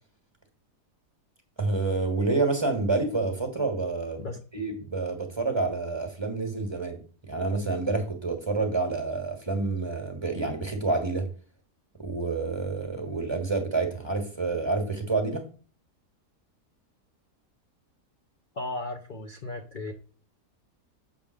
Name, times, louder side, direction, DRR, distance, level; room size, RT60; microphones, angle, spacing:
voice 1, 1.6-4.3 4.5-11.3 12.0-15.5, right 3 dB, 15° right, 1.4 m, -28 dB
voice 2, 18.5-19.9, left 2 dB, 40° left, 0.8 m, -35 dB
7.5 x 3.5 x 6.3 m
omnidirectional pair, 1.8 m